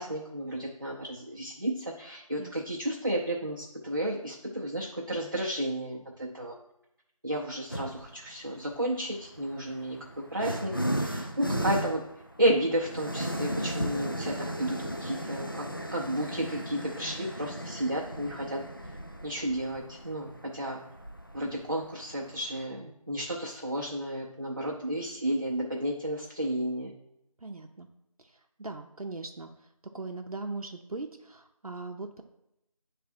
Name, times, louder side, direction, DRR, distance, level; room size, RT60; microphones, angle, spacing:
voice 1, 0.0-6.5 7.2-12.0 12.4-18.6 19.2-20.8 21.3-26.9, right 1 dB, 35° right, -4 dB, 0.6 m, -32 dB
sound 1, 7.7-8.2 9.1-22.6, equal, 35° left, 0.4 m, -36 dB
voice 2, 27.4-27.9 28.2-29.5 29.9-32.2, right 3 dB, 75° right, 3 dB, 0.7 m, -40 dB
8.5 x 3.4 x 4.3 m, 0.84 s
figure-of-eight pair, 170°, 19 cm